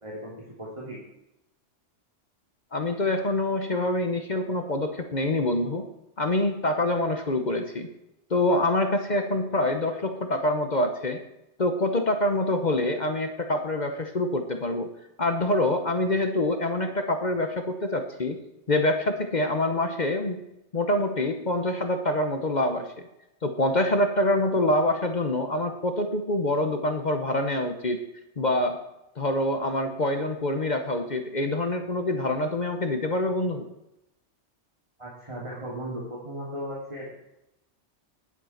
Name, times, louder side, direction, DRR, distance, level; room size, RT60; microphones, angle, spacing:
voice 1, 0.0-1.0 35.0-37.1, equal, 25° right, -5 dB, 2.6 m, -36 dB
voice 2, 2.7-5.8 6.2-7.9 8.3-11.2 11.6-14.9 15.2-18.4 18.7-20.4 20.7-23.1 23.4-28.0 28.4-28.8 29.2-33.7, left 1 dB, 40° left, 6 dB, 1.0 m, -25 dB
11.0 x 7.5 x 5.8 m, 0.87 s
omnidirectional pair, 1.2 m